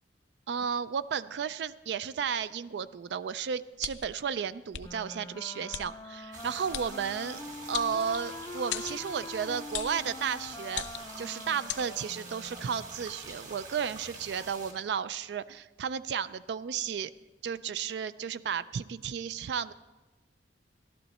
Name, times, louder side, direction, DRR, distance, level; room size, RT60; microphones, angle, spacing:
voice 1, 0.5-7.4 7.7-10.8 11.2-17.1 17.4-19.7, right 7 dB, 70° right, 15 dB, 0.4 m, -33 dB
sound 1, 3.8-4.2 4.7-4.9 5.7-5.9 6.7-6.9 7.7-8.3 8.7-9.0 9.7-10.0 10.7-11.2 11.7-11.8, left 11 dB, 90° left, 0.5 m, -36 dB
Wind instrument woodwind instrument, 4.8-13.0, left 2 dB, 20° left, 0.4 m, -44 dB
sound 2, 6.3-14.7, right 3 dB, 45° right, 2.1 m, -46 dB
14.5 x 12.0 x 4.2 m, 1.2 s
head